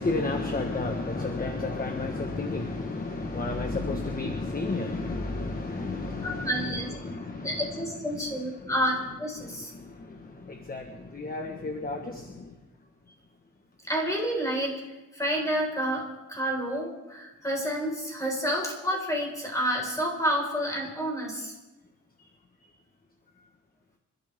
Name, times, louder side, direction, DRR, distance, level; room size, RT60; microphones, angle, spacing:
voice 1, 0.0-6.7 7.0-7.5 9.7-12.5, left 3 dB, 30° left, 4 dB, 1.5 m, -32 dB
voice 2, 6.2-6.9 7.4-9.7 13.9-14.8 15.1-21.5, equal, 10° left, -1 dB, 5.1 m, -29 dB
27.5 x 13.5 x 3.7 m, 1.1 s
wide cardioid pair, 115°, 30 cm